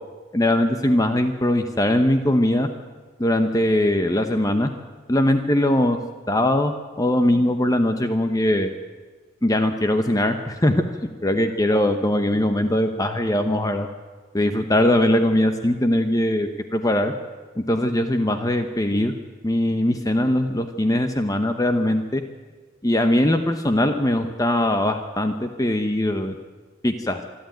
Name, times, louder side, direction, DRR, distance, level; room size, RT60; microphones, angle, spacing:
voice 1, 0.3-2.7 3.2-4.7 5.1-6.0 6.3-8.7 9.4-10.8 11.2-13.9 14.3-17.1 17.6-19.1 19.4-22.2 22.8-26.3 26.8-27.2, left 1 dB, 20° left, 7 dB, 1.0 m, -21 dB
26.0 x 11.5 x 9.2 m, 1.4 s
head